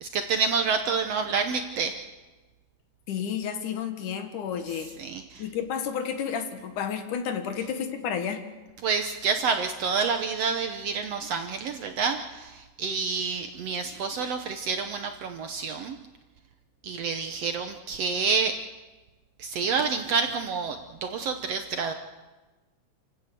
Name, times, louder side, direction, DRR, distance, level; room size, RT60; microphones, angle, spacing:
voice 1, 0.0-1.9 5.0-5.4 8.8-16.0 16.8-18.6 19.4-21.9, right 5 dB, 65° right, 6 dB, 1.6 m, -28 dB
voice 2, 3.1-4.9 5.4-8.4, left 7 dB, 75° left, 7 dB, 2.9 m, -31 dB
28.0 x 16.0 x 6.8 m, 1.2 s
omnidirectional pair, 3.7 m